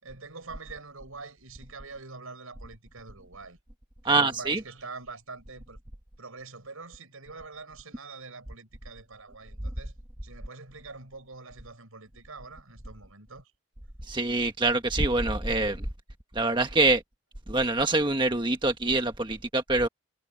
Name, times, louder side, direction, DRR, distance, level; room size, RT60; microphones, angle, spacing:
voice 1, 0.0-3.6 4.0-5.8 6.2-10.0 10.2-13.5, right 4 dB, 90° right, 5.9 m, -45 dB
voice 2, 4.0-4.6 14.0-15.9 16.3-17.0 17.5-19.9, right 2 dB, 20° right, 1.4 m, -25 dB
head